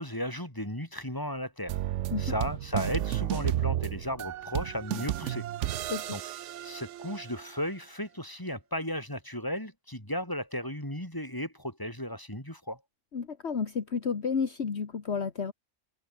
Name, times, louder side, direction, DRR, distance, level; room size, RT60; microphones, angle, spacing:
voice 1, 0.0-1.8 2.2-5.5 6.1-6.2 6.6-12.8, left 1 dB, 15° left, 6.9 m, -35 dB
sound 1, 1.7-7.5, right 12 dB, 75° right, 0.9 m, -32 dB
voice 2, 13.1-15.5, left 5 dB, 55° left, 1.8 m, -31 dB
omnidirectional pair, 1.3 m